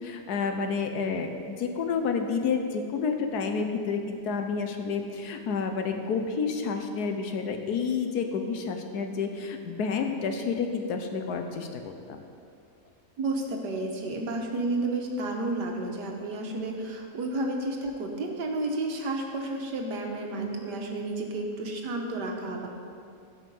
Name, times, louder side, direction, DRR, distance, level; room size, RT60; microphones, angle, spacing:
voice 1, 0.0-12.2, left 5 dB, 70° left, 5 dB, 1.4 m, -30 dB
voice 2, 13.2-22.7, right 2 dB, 80° right, 2 dB, 1.8 m, -31 dB
16.5 x 5.7 x 5.5 m, 2.4 s
omnidirectional pair, 1.8 m